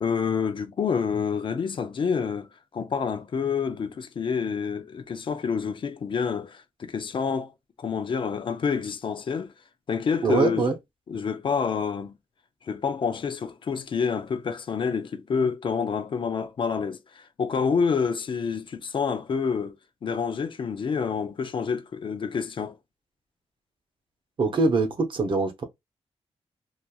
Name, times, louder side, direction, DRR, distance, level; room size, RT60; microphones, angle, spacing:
voice 1, 0.0-2.5 2.7-7.5 7.8-9.5 9.9-10.7 11.1-12.1 12.7-19.8 20.0-22.8, left 6 dB, 50° left, 0.4 m, -28 dB
voice 2, 10.2-10.7 24.4-25.6, right 3 dB, 50° right, 0.7 m, -23 dB
2.9 x 2.5 x 2.3 m
wide cardioid pair, 110°, 11 cm